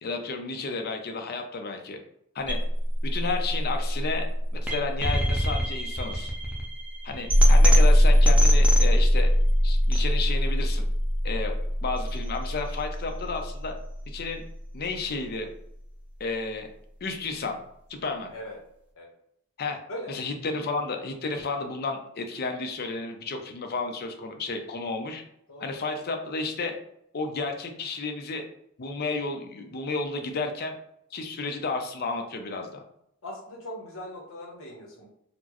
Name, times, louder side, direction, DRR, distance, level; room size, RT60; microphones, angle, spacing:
voice 1, 0.0-2.0 2.3-2.6 3.0-4.2 4.6-6.3 7.0-9.3 9.6-10.9 11.2-11.5 11.8-13.7 14.1-14.4 14.7-15.5 16.2-16.7 17.0-17.6 17.9-18.3 19.6-19.8 20.1-25.2 25.6-26.8 27.1-28.4 28.8-30.8 31.1-32.8, left 3 dB, 45° left, 5 dB, 0.5 m, -32 dB
sound 1, 2.4-14.5, equal, 5° right, 0.5 m, -22 dB
voice 2, 33.2-35.1, left 1 dB, 65° left, -2 dB, 0.9 m, -40 dB
4.2 x 2.0 x 2.9 m, 0.77 s
head